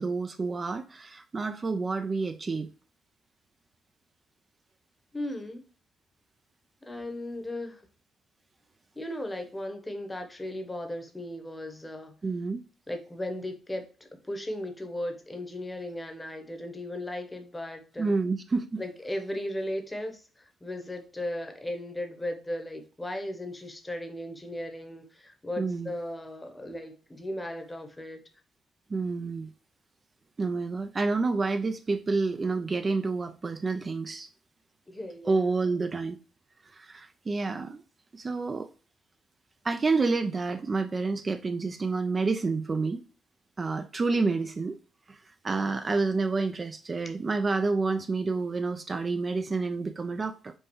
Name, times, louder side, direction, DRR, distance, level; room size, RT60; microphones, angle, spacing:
voice 1, 0.0-2.7 12.2-12.6 18.0-18.8 25.6-25.9 28.9-29.5 30.4-34.3 35.2-36.2 36.7-37.8 38.1-38.7 39.6-43.0 43.6-44.8 45.1-50.5, right 3 dB, 30° right, 0.3 m, -29 dB
voice 2, 5.1-5.6 6.8-7.8 8.9-12.1 12.9-18.1 18.8-28.2 34.9-35.5, left 1 dB, 15° left, 0.9 m, -36 dB
5.3 x 2.3 x 3.0 m
cardioid pair, 90°, 0 cm